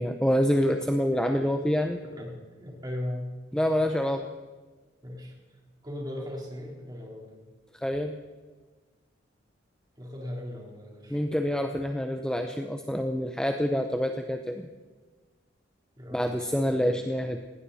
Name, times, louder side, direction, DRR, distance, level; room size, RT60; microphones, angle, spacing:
voice 1, 0.0-2.0 3.5-4.3 7.7-8.1 11.1-14.7 16.1-17.4, equal, 5° left, 5 dB, 0.7 m, -27 dB
voice 2, 2.6-3.4 5.0-5.3 5.8-7.4 10.0-11.2 16.0-16.9, left 1 dB, 20° right, -2 dB, 4.0 m, -38 dB
19.5 x 17.0 x 4.2 m, 1.3 s
head